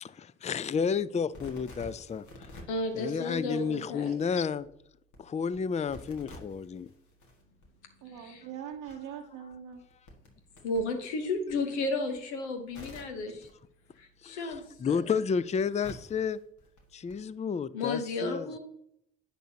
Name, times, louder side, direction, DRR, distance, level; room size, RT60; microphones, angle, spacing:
voice 1, 0.0-2.5 3.0-4.7 5.2-6.9 14.2-16.4 16.9-18.5, left 6 dB, 20° left, 18 dB, 0.4 m, -31 dB
sound 1, 1.2-17.1, left 1 dB, 60° left, 1.9 m, -53 dB
voice 2, 2.7-4.1 8.1-8.5 10.6-13.5 14.0-15.2 17.7-18.6, left 2 dB, 85° left, 6 dB, 1.0 m, -33 dB
voice 3, 8.0-9.8, right 8 dB, 75° right, 1 dB, 0.8 m, -42 dB
10.0 x 6.7 x 2.8 m, 0.74 s
hypercardioid pair, 40°, 33 cm